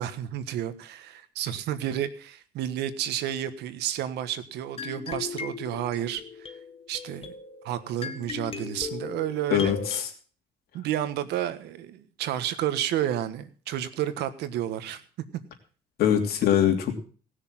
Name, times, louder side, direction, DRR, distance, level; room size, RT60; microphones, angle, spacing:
voice 1, 0.0-6.2 6.9-7.3 7.6-9.8 10.7-15.0, right 11 dB, 80° right, 12 dB, 1.5 m, -31 dB
sound 1, 4.8-10.0, left 5 dB, 35° left, 1.5 m, -38 dB
voice 2, 9.5-10.1 16.0-17.0, left 9 dB, 65° left, 4 dB, 3.1 m, -23 dB
18.0 x 6.7 x 7.5 m, 0.42 s
cardioid pair, 110°, 17 cm